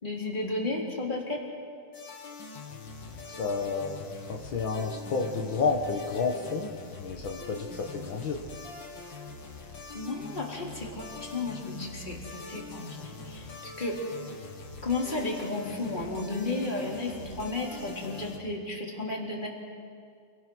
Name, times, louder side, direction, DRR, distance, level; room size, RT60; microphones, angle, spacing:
voice 1, 0.0-1.4 9.9-14.0 14.8-19.5, left 2 dB, 15° left, -2 dB, 3.1 m, -33 dB
sound 1, 1.9-18.4, left 4 dB, 40° left, 1.9 m, -43 dB
voice 2, 3.3-8.4, left 4 dB, 85° left, 2 dB, 1.1 m, -31 dB
28.5 x 22.0 x 6.3 m, 2.2 s
omnidirectional pair, 4.5 m